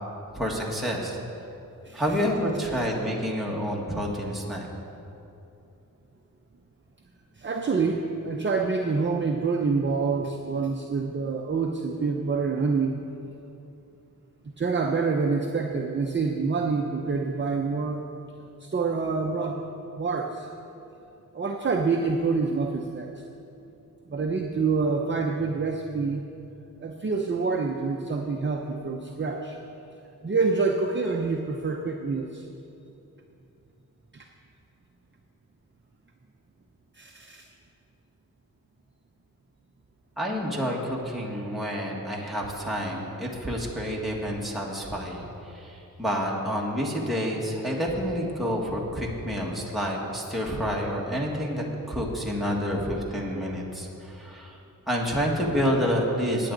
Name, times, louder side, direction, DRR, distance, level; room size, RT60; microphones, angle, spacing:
voice 1, 0.3-1.2 1.9-4.7 40.2-54.6 54.9-56.5, equal, ahead, -3 dB, 1.6 m, -28 dB
voice 2, 7.4-13.0 14.6-18.0 18.6-19.6 20.0-20.5 21.3-23.1 24.1-26.2 26.8-29.6 30.2-32.4 34.1-34.3 36.9-37.5, right 4 dB, 30° right, 2 dB, 0.7 m, -27 dB
19.0 x 8.4 x 3.9 m, 2.8 s
wide cardioid pair, 120°, 35 cm